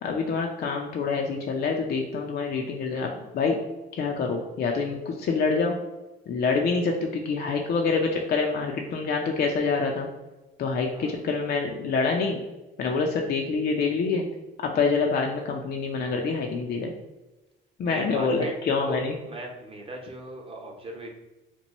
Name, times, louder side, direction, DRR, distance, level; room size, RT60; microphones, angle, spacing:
voice 1, 0.0-3.6 3.9-5.8 6.3-10.1 10.6-12.4 12.8-14.3 14.6-16.9 17.8-19.1, left 4 dB, 55° left, 1 dB, 0.5 m, -26 dB
voice 2, 12.8-13.1 17.8-18.5 18.9-21.1, right 2 dB, 30° right, 0 dB, 0.8 m, -38 dB
3.0 x 2.2 x 4.0 m, 1.1 s
cardioid pair, 90°, 20 cm